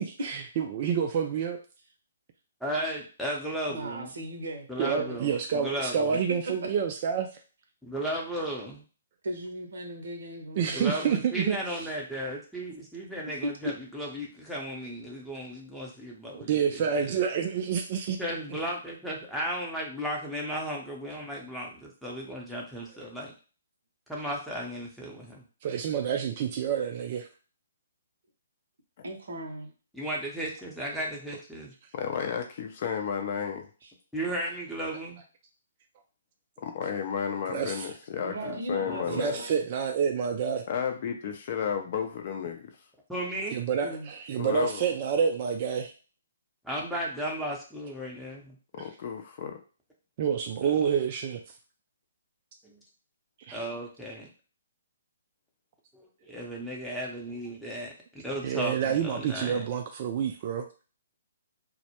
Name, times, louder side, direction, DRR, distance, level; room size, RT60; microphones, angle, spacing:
voice 1, 0.0-1.6 4.8-7.3 10.6-11.8 16.3-18.2 25.6-27.3 37.5-37.9 39.1-40.6 43.5-45.9 50.2-51.4 53.5-53.6 58.4-60.7, right 7 dB, 40° right, 4 dB, 0.3 m, -28 dB
voice 2, 2.6-4.1 4.7-6.2 7.8-8.8 10.7-17.2 18.2-23.3 24.1-25.4 29.9-31.7 34.1-35.2 38.4-38.6 38.9-39.1 43.1-43.6 46.6-48.6 50.7-50.8 52.6-52.8 53.5-54.3 55.9-57.9 58.2-59.7, right 1 dB, ahead, -4 dB, 0.6 m, -35 dB
voice 3, 3.7-5.3 6.5-6.7 9.2-11.2 13.4-13.5 29.0-29.7 33.8-33.9 38.2-39.6 43.8-44.1, right 1 dB, 70° right, 3 dB, 0.7 m, -37 dB
voice 4, 31.9-33.7 36.6-39.4 40.7-42.6 44.4-44.9 48.7-49.6, left 7 dB, 45° left, 4 dB, 0.5 m, -32 dB
2.1 x 2.0 x 2.8 m, 0.36 s
hypercardioid pair, 135°, 0 cm